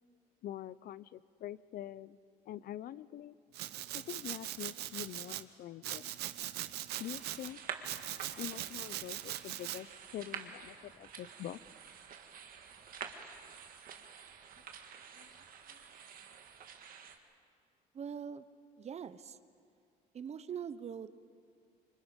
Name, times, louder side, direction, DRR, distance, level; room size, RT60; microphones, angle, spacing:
voice 1, 0.4-2.2 2.5-3.3 3.9-6.0 7.0-7.6 8.4-9.9 10.1-11.6 15.2-15.3 15.7-15.8, left 12 dB, 60° left, 19 dB, 0.6 m, -45 dB
Domestic sounds home sounds, 3.5-5.4 5.8-7.5 7.8-9.8, right 14 dB, 75° right, 0.9 m, -41 dB
sound 1, 6.9-17.2, right 7 dB, 55° right, 1.9 m, -49 dB
voice 2, 17.9-18.4 18.8-19.4 20.1-21.1, right 7 dB, 40° right, 13 dB, 0.9 m, -42 dB
26.5 x 24.5 x 5.2 m, 2.3 s
cardioid pair, 110°, 17 cm